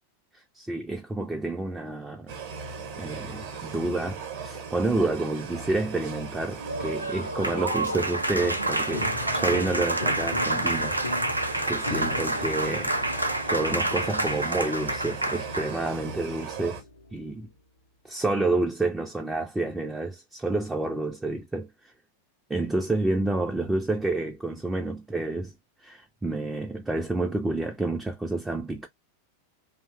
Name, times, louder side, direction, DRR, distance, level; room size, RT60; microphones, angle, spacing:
voice 1, 0.3-2.3 3.0-11.0 11.3-12.9 13.5-16.8 17.1-17.5 18.0-21.9 22.5-25.5 25.8-28.9, right 2 dB, 10° right, 0.3 m, -29 dB
sound 1, 2.3-16.8, right 4 dB, 50° right, 0.7 m, -38 dB
Applause, 6.6-15.8, right 2 dB, 85° right, 0.4 m, -28 dB
Piano, 8.9-17.4, left 3 dB, 75° left, 0.5 m, -40 dB
2.7 x 2.0 x 2.3 m
figure-of-eight pair, 90°, 0 cm